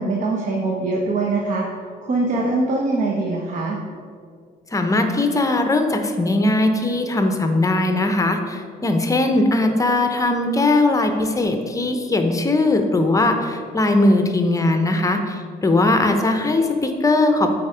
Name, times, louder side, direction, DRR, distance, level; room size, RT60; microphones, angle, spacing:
voice 1, 0.0-1.7 2.0-3.8, right 2 dB, 45° right, -1 dB, 1.0 m, -22 dB
voice 2, 4.7-17.5, left 2 dB, 20° left, 6 dB, 0.7 m, -19 dB
8.7 x 4.2 x 4.9 m, 2.2 s
cardioid pair, 110°, 17 cm